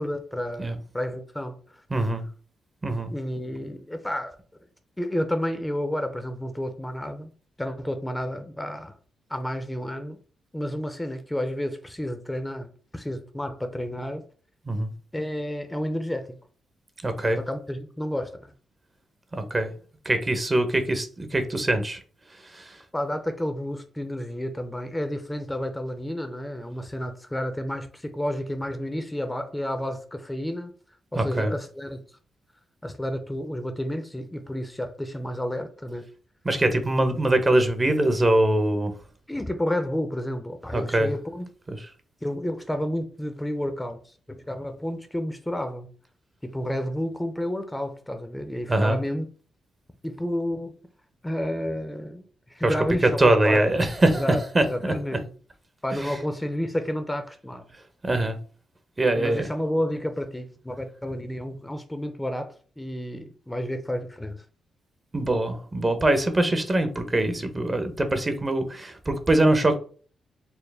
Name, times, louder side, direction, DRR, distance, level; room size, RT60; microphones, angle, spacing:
voice 1, 0.0-1.8 3.1-4.4 5.0-7.3 7.6-8.9 9.3-10.2 10.5-14.2 15.1-16.3 17.4-18.5 22.9-30.7 31.1-32.0 32.8-36.1 39.3-41.5 42.2-45.9 46.4-49.3 50.0-50.7 51.2-52.2 52.5-53.7 54.0-54.4 54.7-55.3 55.8-57.7 59.1-64.4, left 1 dB, 10° left, 0.6 m, -31 dB
voice 2, 1.9-2.2 2.8-3.1 14.7-14.9 17.0-17.4 19.3-19.7 20.0-22.0 22.5-22.8 31.1-31.5 36.4-38.9 40.7-41.1 48.7-49.0 52.6-52.7 53.0-54.2 54.5-54.9 56.0-56.1 58.0-58.4 59.0-59.5 65.1-69.8, right 1 dB, 30° right, 0.8 m, -23 dB
4.3 x 2.1 x 3.4 m
supercardioid pair, 55°, 0 cm